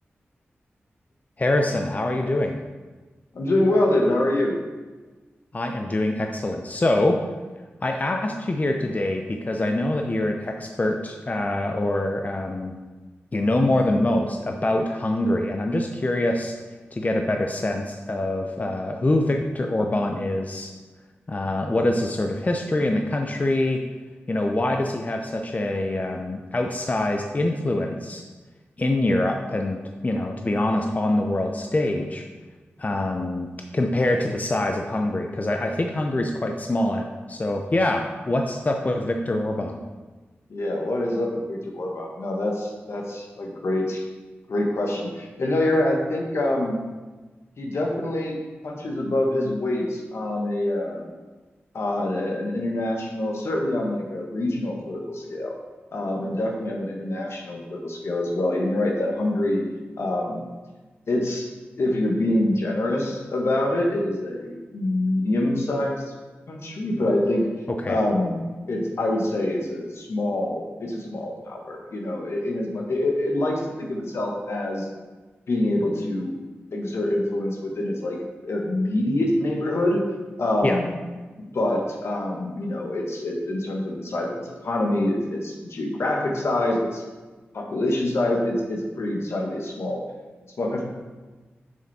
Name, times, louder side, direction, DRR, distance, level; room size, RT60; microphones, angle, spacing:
voice 1, 1.4-2.6 5.5-7.2 7.8-12.8 13.3-16.5 16.9-20.7 21.3-23.8 24.3-28.2 28.8-32.3 32.8-39.8 67.7-68.0 80.6-80.8, left 1 dB, 35° left, 3 dB, 0.6 m, -24 dB
voice 2, 3.3-4.6 40.5-44.0 44.5-46.8 47.6-48.4 48.6-51.0 51.7-55.5 55.9-59.6 60.0-60.4 61.1-61.5 61.8-66.0 66.5-67.4 67.9-68.4 68.7-74.8 75.5-76.3 76.7-78.2 78.4-80.0 80.4-81.0 81.4-87.0 87.5-90.0 90.6-90.8, left 1 dB, 75° left, 0 dB, 1.5 m, -25 dB
6.9 x 6.4 x 4.3 m, 1.3 s
cardioid pair, 55°, 4 cm